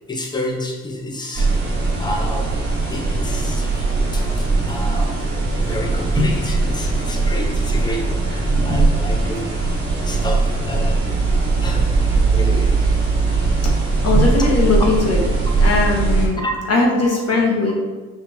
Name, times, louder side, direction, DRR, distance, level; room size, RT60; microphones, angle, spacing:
voice 1, 0.1-1.6 2.0-2.6 2.9-3.8 4.1-5.3 5.5-9.6 10.0-11.1 11.6-12.9 16.4-16.5 17.1-17.2, left 1 dB, 15° left, 0 dB, 0.7 m, -30 dB
sound 1, 1.3-16.3, right 3 dB, 35° right, 1.5 m, -19 dB
voice 2, 14.0-15.2 15.6-16.4 16.7-17.7, left 3 dB, 55° left, -1 dB, 1.3 m, -19 dB
5.8 x 2.8 x 3.0 m, 1.3 s
cardioid pair, 90°, 30 cm